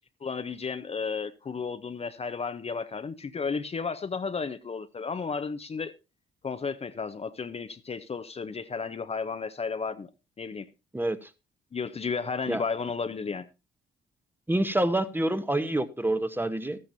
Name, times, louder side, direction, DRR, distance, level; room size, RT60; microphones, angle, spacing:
voice 1, 0.2-5.9 6.4-10.1 10.4-10.7 11.7-13.5, left 5 dB, 30° left, 0.7 m, -33 dB
voice 2, 10.9-11.3 12.5-12.6 14.5-16.8, right 1 dB, 10° right, 1.0 m, -27 dB
13.5 x 13.0 x 2.7 m
cardioid pair, 90°, 20 cm